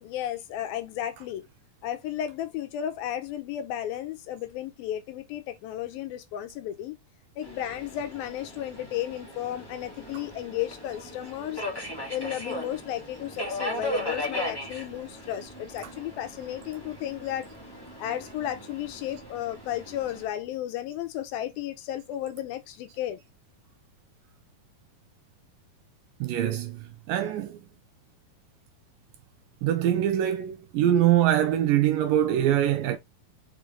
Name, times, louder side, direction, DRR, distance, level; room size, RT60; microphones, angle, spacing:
voice 1, 0.0-1.5 1.8-7.0 7.4-11.6 12.1-17.5 18.0-23.2, left 11 dB, 80° left, 2.4 m, -34 dB
Subway metro underground, 7.4-20.2, left 1 dB, 15° left, 0.7 m, -38 dB
voice 2, 26.2-27.6 29.6-33.0, right 11 dB, 75° right, 2.1 m, -24 dB
5.3 x 5.0 x 3.7 m
omnidirectional pair, 4.5 m